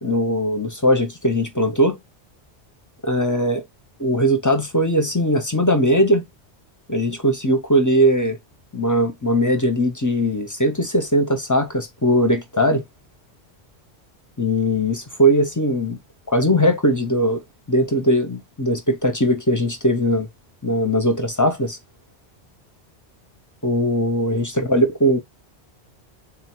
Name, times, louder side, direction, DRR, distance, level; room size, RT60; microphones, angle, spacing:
voice 1, 0.0-2.0 3.0-3.6 4.0-6.2 6.9-8.4 8.7-12.8 14.4-16.0 16.3-17.4 17.7-20.3 20.6-21.8 23.6-25.2, equal, 25° left, 0.5 m, -19 dB
3.8 x 2.3 x 4.3 m
omnidirectional pair, 1.1 m